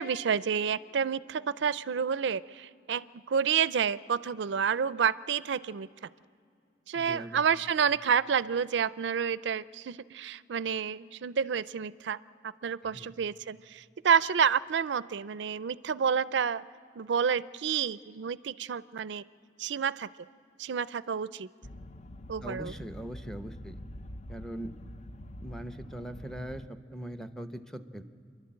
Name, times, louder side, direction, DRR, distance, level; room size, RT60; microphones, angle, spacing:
voice 1, 0.0-5.9 6.9-12.2 12.6-16.6 17.0-19.2 19.6-20.1 20.6-21.5 22.3-22.7, right 7 dB, 70° right, 17 dB, 0.4 m, -29 dB
voice 2, 6.9-7.4 12.9-13.1 22.4-23.8 24.3-24.7 25.4-26.6 26.9-28.0, right 1 dB, 5° left, 8 dB, 0.8 m, -41 dB
sound 1, 21.6-26.7, left 1 dB, 40° left, 0.6 m, -45 dB
29.5 x 11.5 x 8.8 m, 2.4 s
head